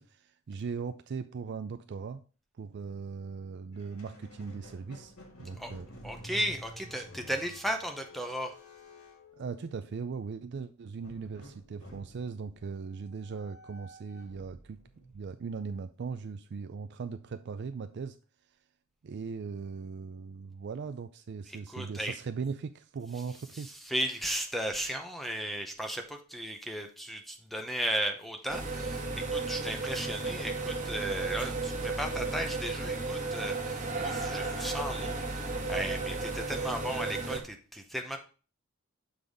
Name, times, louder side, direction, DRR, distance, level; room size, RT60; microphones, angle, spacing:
voice 1, 0.0-2.2 2.6-5.1 5.4-5.9 9.4-14.8 15.1-18.2 19.0-23.7, right 5 dB, 50° right, 10 dB, 0.4 m, -39 dB
Squeak, 3.7-10.1 11.0-16.2, equal, 85° left, 1.7 m, -51 dB
voice 2, 6.0-8.5 21.5-22.1 23.5-38.2, equal, ahead, 4 dB, 0.7 m, -35 dB
sound 1, 28.5-37.4, right 3 dB, 35° right, 1.2 m, -34 dB
6.9 x 4.0 x 4.8 m, 0.37 s
head